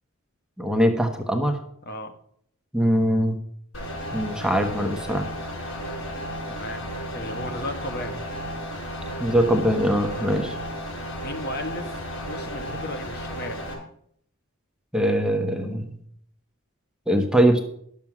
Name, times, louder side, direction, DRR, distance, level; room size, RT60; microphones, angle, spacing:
voice 1, 0.6-1.6 2.7-3.4 4.1-5.3 9.2-10.6 14.9-15.9 17.1-17.6, equal, 5° right, 4 dB, 1.1 m, -22 dB
voice 2, 1.8-2.1 6.5-6.8 7.1-8.3 10.1-10.3 11.2-12.0 12.2-13.6, left 1 dB, 50° left, 6 dB, 1.2 m, -35 dB
sound 1, 3.7-13.7, equal, 75° left, 5.2 m, -33 dB
11.0 x 7.3 x 6.1 m, 0.66 s
head